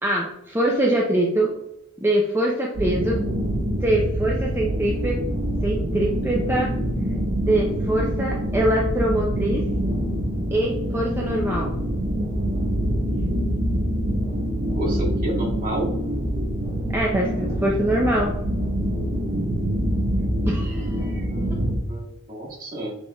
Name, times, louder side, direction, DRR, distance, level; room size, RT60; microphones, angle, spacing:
voice 1, 0.0-1.5 2.0-3.2 3.8-5.2 5.6-6.7 7.4-9.6 10.5-11.7 16.9-18.3 20.4-21.3, right 1 dB, 10° right, -3 dB, 0.5 m, -23 dB
sound 1, 2.7-21.8, equal, 60° right, 1.3 m, -25 dB
voice 2, 14.7-15.9 21.3-22.9, right 1 dB, 45° right, -4 dB, 1.6 m, -30 dB
6.3 x 3.4 x 2.3 m, 0.84 s
head